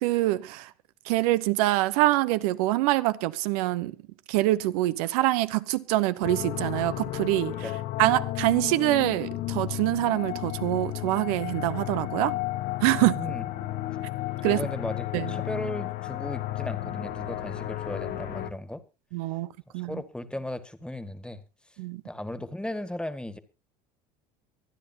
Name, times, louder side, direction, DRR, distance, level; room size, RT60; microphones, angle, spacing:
voice 1, 0.0-0.7 1.1-4.0 4.3-7.7 8.0-12.4 12.8-13.2 14.4-14.7 15.1-15.4 19.1-19.5 19.7-20.0 21.8-22.0, right 17 dB, 80° right, 0.9 m, -25 dB
sound 1, 6.2-18.5, left 15 dB, 60° left, 1.6 m, -33 dB
voice 2, 13.0-13.5 14.4-18.8 19.7-21.4 22.0-23.4, left 1 dB, 5° left, 1.9 m, -36 dB
24.5 x 9.9 x 2.9 m
hypercardioid pair, 75°, 19 cm